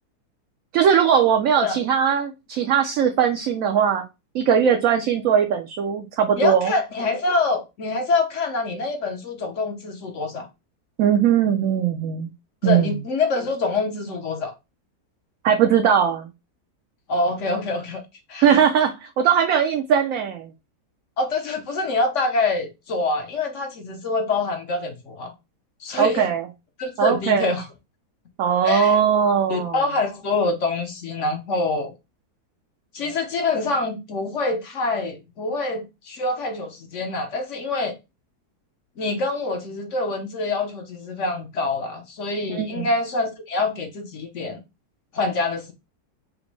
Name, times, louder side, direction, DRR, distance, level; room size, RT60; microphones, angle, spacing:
voice 1, 0.7-4.0 4.3-6.7 11.0-12.3 12.6-12.9 15.4-16.3 18.4-20.5 26.0-26.4 27.0-27.6 28.4-29.8 42.5-42.9, right 8 dB, 65° right, 0.9 m, -20 dB
voice 2, 6.4-10.5 12.6-14.5 17.1-18.0 18.3-18.5 21.2-25.3 25.8-26.3 26.8-27.7 28.6-29.0 29.5-31.9 32.9-37.9 39.0-44.6 45.1-45.7, left 3 dB, 55° left, 1.0 m, -25 dB
5.1 x 2.1 x 4.6 m
omnidirectional pair, 1.8 m